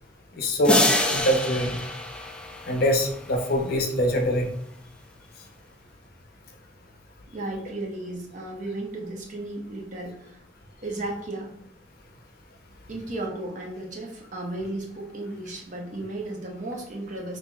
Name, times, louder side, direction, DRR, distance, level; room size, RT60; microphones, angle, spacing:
voice 1, 0.4-0.8 1.1-1.8 2.7-4.5, equal, 55° left, 3 dB, 0.6 m, -23 dB
sound 1, 0.6-3.4, left 1 dB, 5° left, 0.3 m, -26 dB
voice 2, 7.3-10.4 10.8-11.5 12.9-17.4, right 2 dB, 45° right, 0 dB, 0.8 m, -34 dB
5.7 x 2.7 x 2.3 m, 0.72 s
head